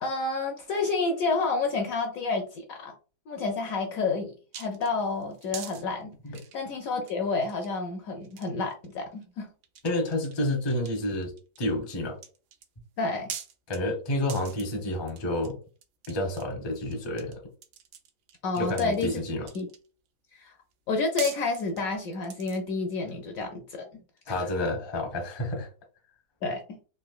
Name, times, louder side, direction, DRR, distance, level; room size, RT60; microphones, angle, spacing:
voice 1, 0.0-2.9 3.3-6.1 6.5-9.5 13.0-13.3 18.4-19.1 19.5-19.7 20.3-20.5 20.9-24.5 26.4-26.6, left 3 dB, 70° left, 3 dB, 0.8 m, -30 dB
sound 1, 4.5-5.8 6.3-7.1 7.4-7.7 8.2-8.9 9.2-9.3 9.6-10.3 10.7-11.6 12.2-12.7 13.3-13.8 14.3-14.6 15.1-15.5 15.8-17.3 17.6-19.9 20.7-20.8 21.2-22.7, right 8 dB, 75° right, 1.1 m, -42 dB
voice 2, 9.8-11.3 11.6-12.2 13.7-15.6 16.1-17.4 18.6-19.5 24.3-25.7, left 1 dB, 35° left, 1 dB, 0.4 m, -29 dB
3.9 x 2.5 x 2.4 m, 0.37 s
omnidirectional pair, 1.8 m